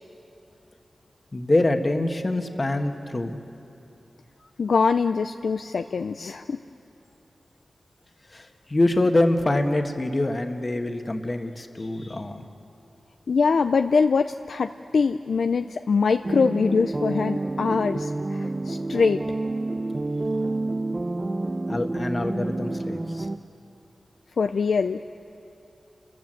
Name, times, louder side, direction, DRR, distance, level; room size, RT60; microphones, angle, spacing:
voice 1, 1.3-3.4 8.3-12.4 21.7-23.3, left 2 dB, 40° left, 5 dB, 1.6 m, -25 dB
voice 2, 4.6-6.6 13.3-19.2 24.4-25.0, left 5 dB, 85° left, 8 dB, 0.4 m, -23 dB
sound 1, 16.2-23.4, right 2 dB, 40° right, 0.8 m, -29 dB
30.0 x 14.5 x 7.8 m, 2.8 s
cardioid pair, 40°, 0 cm